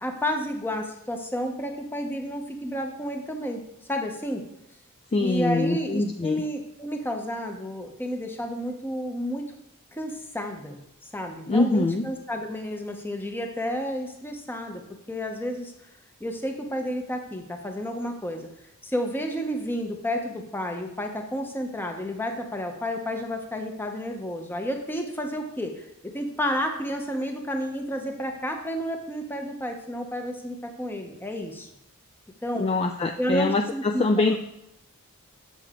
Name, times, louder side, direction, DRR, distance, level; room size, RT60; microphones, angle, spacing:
voice 1, 0.0-3.6 3.9-4.4 5.2-9.5 9.9-10.8 11.1-14.8 15.1-15.7 16.2-18.5 18.8-31.7 32.4-32.7 33.2-34.4, equal, 10° left, 3 dB, 0.8 m, -31 dB
voice 2, 5.1-6.4 11.5-12.1 32.6-34.4, left 2 dB, 25° left, 4 dB, 0.3 m, -24 dB
6.9 x 6.7 x 3.7 m, 0.81 s
head